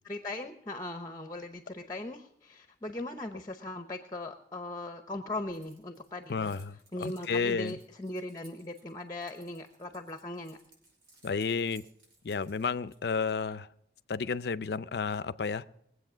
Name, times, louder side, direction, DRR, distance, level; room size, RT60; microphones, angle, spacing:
voice 1, 0.0-6.5 6.9-10.6, left 2 dB, 20° left, 7 dB, 0.8 m, -39 dB
Keys jangling, 5.5-13.3, right 2 dB, 90° right, 5.1 m, -61 dB
voice 2, 6.3-7.8 11.2-11.8 12.2-13.7 14.1-15.6, left 5 dB, 65° left, 15 dB, 0.5 m, -32 dB
21.0 x 8.1 x 6.1 m, 0.75 s
head